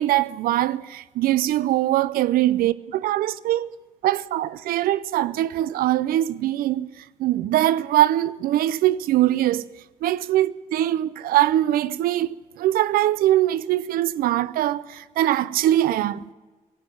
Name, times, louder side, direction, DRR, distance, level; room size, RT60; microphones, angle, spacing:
voice 1, 0.0-2.7 3.0-3.7 4.0-9.6 10.0-16.2, right 13 dB, 75° right, 0.5 m, -22 dB
17.5 x 8.1 x 9.5 m
supercardioid pair, 55°, 15 cm